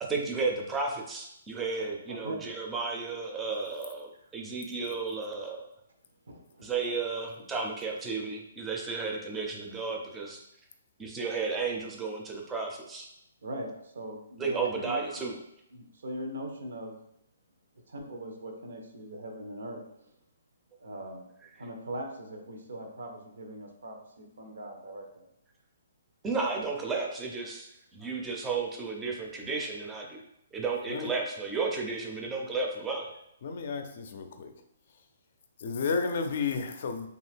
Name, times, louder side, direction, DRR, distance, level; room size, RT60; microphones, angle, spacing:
voice 1, 0.0-5.6 6.6-10.4 11.0-13.1 14.4-15.4 26.2-30.2 30.5-33.1, right 4 dB, 10° right, 0 dB, 0.5 m, -33 dB
voice 2, 2.1-2.4 6.3-6.7 13.4-15.3 15.7-16.9 17.9-19.8 20.8-21.2 21.6-25.2, right 1 dB, 80° right, 3 dB, 0.6 m, -40 dB
voice 3, 33.4-34.5 35.6-37.1, left 5 dB, 55° left, 6 dB, 0.4 m, -32 dB
2.7 x 2.4 x 3.3 m, 0.77 s
hypercardioid pair, 150°, 0 cm